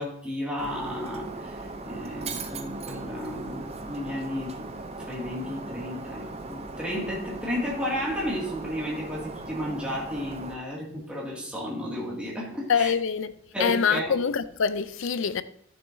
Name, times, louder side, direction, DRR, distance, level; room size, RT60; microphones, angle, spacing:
voice 1, 0.0-1.6 1.8-4.7 5.0-12.9 13.5-14.2, equal, 5° right, 2.2 m, -33 dB
Shatter, 0.6-10.5, right 3 dB, 30° right, 0.6 m, -38 dB
voice 2, 12.7-13.3 13.6-15.4, left 6 dB, 60° left, 0.5 m, -25 dB
12.0 x 6.9 x 2.7 m
head